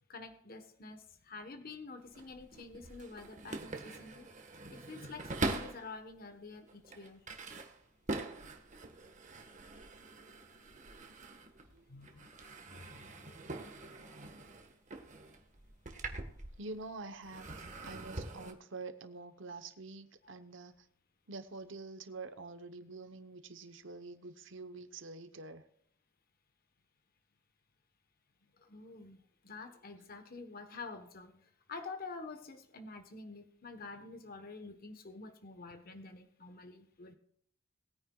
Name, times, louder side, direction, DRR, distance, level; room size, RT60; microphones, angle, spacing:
voice 1, 0.1-4.3 4.7-7.2 11.9-13.3 28.6-29.2 29.4-37.1, left 3 dB, 45° left, 7 dB, 1.2 m, -48 dB
sound 1, 2.0-5.9 6.5-11.8 12.0-16.9 17.2-18.5, right 2 dB, 35° right, 1.5 m, -43 dB
voice 2, 16.6-17.5 17.8-20.9 21.3-25.6, right 3 dB, 65° right, 9 dB, 1.0 m, -46 dB
20.5 x 9.9 x 2.4 m, 0.65 s
head